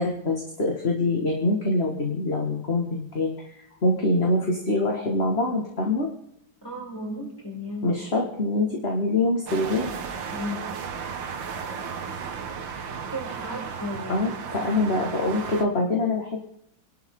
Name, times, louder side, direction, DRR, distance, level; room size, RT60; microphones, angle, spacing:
voice 1, 0.0-6.1 7.8-9.9 14.1-16.4, left 2 dB, 35° left, 0 dB, 2.2 m, -25 dB
voice 2, 6.6-7.9 10.3-10.8 13.1-14.7 15.3-15.4, left 1 dB, 10° left, -4 dB, 7.2 m, -35 dB
sound 1, 9.5-15.6, right 6 dB, 90° right, 2.1 m, -34 dB
28.5 x 12.5 x 3.9 m, 0.72 s
omnidirectional pair, 2.0 m